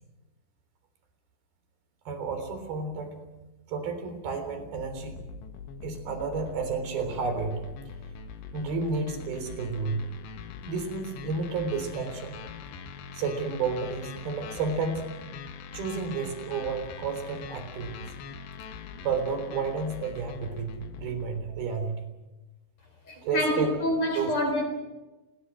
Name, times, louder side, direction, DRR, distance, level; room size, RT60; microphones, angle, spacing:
voice 1, 2.1-3.1 3.7-5.2 5.8-7.6 8.5-10.1 10.6-12.4 13.2-15.2 15.7-17.9 19.0-22.0 23.2-23.8 24.2-24.3, right 4 dB, 60° right, 8 dB, 5.3 m, -31 dB
sound 1, 4.8-21.5, left 5 dB, 90° left, 3.9 m, -42 dB
voice 2, 23.1-24.6, left 1 dB, 40° left, 5 dB, 4.9 m, -27 dB
29.5 x 21.5 x 6.3 m, 1.1 s
omnidirectional pair, 4.9 m